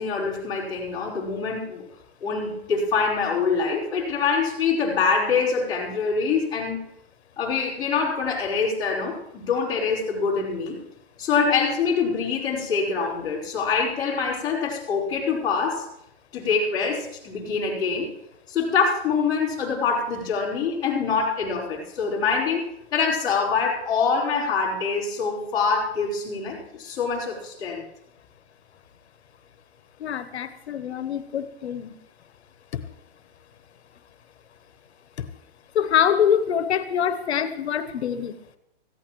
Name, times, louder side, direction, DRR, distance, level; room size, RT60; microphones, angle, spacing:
voice 1, 0.0-1.8 2.2-6.8 7.4-10.8 11.2-15.9 16.3-18.1 18.5-22.6 22.9-27.8, left 5 dB, 10° left, -9 dB, 3.7 m, -25 dB
voice 2, 30.0-31.9 35.7-38.3, left 8 dB, 90° left, 11 dB, 1.0 m, -24 dB
18.0 x 15.0 x 3.1 m, 0.79 s
hypercardioid pair, 170°, 32 cm